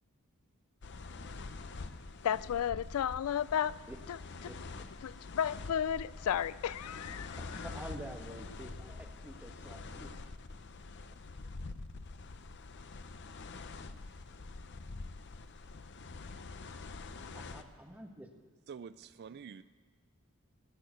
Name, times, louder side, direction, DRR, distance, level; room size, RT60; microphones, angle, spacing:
sound 1, 0.8-17.6, left 3 dB, 55° left, 0.7 m, -46 dB
voice 1, 2.2-3.7 4.1-4.2 5.0-7.7, left 9 dB, 75° left, 20 dB, 0.3 m, -33 dB
voice 2, 7.4-10.1 17.3-18.3, right 1 dB, 5° right, 3 dB, 1.2 m, -48 dB
voice 3, 18.7-19.6, right 6 dB, 50° right, 15 dB, 0.3 m, -47 dB
18.0 x 6.9 x 9.1 m, 1.5 s
head